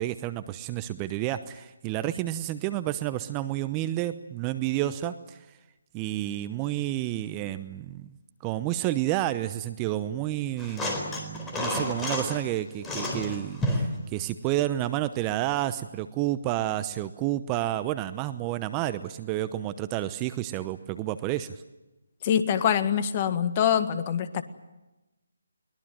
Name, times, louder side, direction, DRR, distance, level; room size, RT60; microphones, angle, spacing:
voice 1, 0.0-5.4 5.9-8.1 8.4-21.6, right 14 dB, 20° right, 12 dB, 0.9 m, -30 dB
sound 1, 10.6-12.4 12.8-14.0 15.5-15.6, left 1 dB, 10° left, 4.2 m, -30 dB
voice 2, 22.2-24.4, left 8 dB, 30° left, 10 dB, 1.7 m, -24 dB
23.0 x 21.0 x 9.2 m, 1.0 s
figure-of-eight pair, 150°, 0 cm